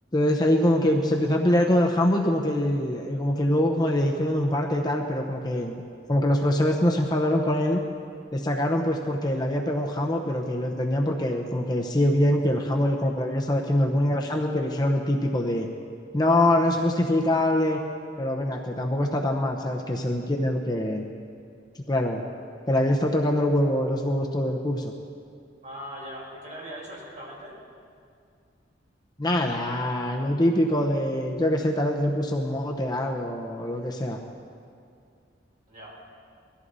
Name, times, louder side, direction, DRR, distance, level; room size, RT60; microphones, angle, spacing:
voice 1, 0.1-5.8 6.1-7.8 8.3-15.7 16.1-17.8 18.2-21.0 21.9-22.2 22.7-24.8 29.2-34.2, left 1 dB, 20° left, 1 dB, 0.9 m, -24 dB
voice 2, 25.6-27.6 35.7-36.0, equal, 40° right, -5 dB, 4.9 m, -40 dB
21.5 x 14.0 x 4.1 m, 2.4 s
head